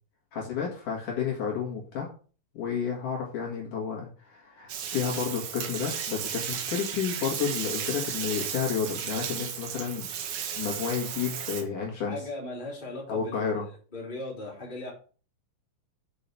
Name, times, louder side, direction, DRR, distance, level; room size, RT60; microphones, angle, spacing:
voice 1, 0.3-2.1 2.5-10.1 10.6-12.2 13.1-13.6, left 7 dB, 60° left, -2 dB, 3.3 m, -31 dB
Bathtub (filling or washing), 4.7-11.6, right 8 dB, 80° right, 3.2 m, -34 dB
voice 2, 12.1-13.5 13.9-14.9, left 2 dB, 15° left, -3 dB, 3.2 m, -37 dB
7.0 x 6.2 x 6.0 m, 0.38 s
omnidirectional pair, 4.4 m